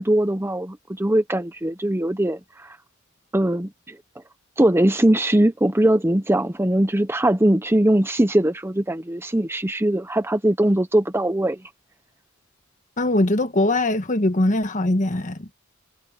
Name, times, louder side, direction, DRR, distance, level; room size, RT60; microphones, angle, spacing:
voice 1, 0.0-2.8 3.3-4.0 4.6-11.6, right 1 dB, 10° right, 0.7 m, -21 dB
voice 2, 13.0-15.5, left 1 dB, 35° left, 1.4 m, -21 dB
head